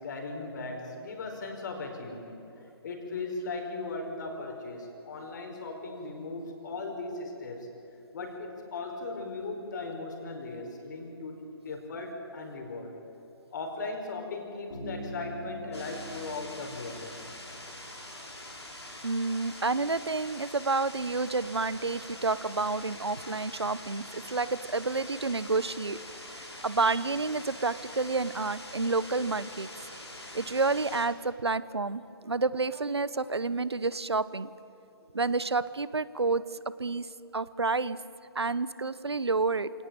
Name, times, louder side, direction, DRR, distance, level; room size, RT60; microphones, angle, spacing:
voice 1, 0.0-2.4 2.8-7.7 8.1-12.9 13.5-17.2, left 3 dB, 45° left, 3 dB, 5.0 m, -38 dB
Bass guitar, 14.7-18.2, equal, 65° left, 6.7 m, -44 dB
sound 1, 15.7-31.1, left 1 dB, 85° left, 5.0 m, -44 dB
voice 2, 19.0-26.0 26.6-29.7 30.3-34.5 35.1-36.4 36.8-38.0 38.3-39.7, right 3 dB, 80° right, 17 dB, 1.0 m, -29 dB
27.5 x 18.5 x 9.0 m, 3.0 s
figure-of-eight pair, 135°, 14 cm